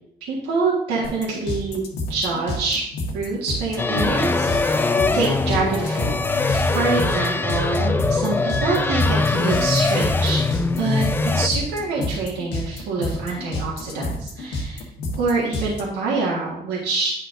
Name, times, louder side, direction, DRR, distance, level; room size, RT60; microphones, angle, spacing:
voice 1, 0.3-1.8 2.1-2.8 3.1-6.1 6.7-10.4 10.8-14.8 15.2-17.1, right 3 dB, 85° right, -5 dB, 1.5 m, -25 dB
sound 1, 1.0-15.8, left 2 dB, 90° left, 1.4 m, -29 dB
sound 2, 3.8-11.5, left 3 dB, 10° left, 0.4 m, -22 dB
9.3 x 5.6 x 2.5 m, 0.76 s
cardioid pair, 110°, 17 cm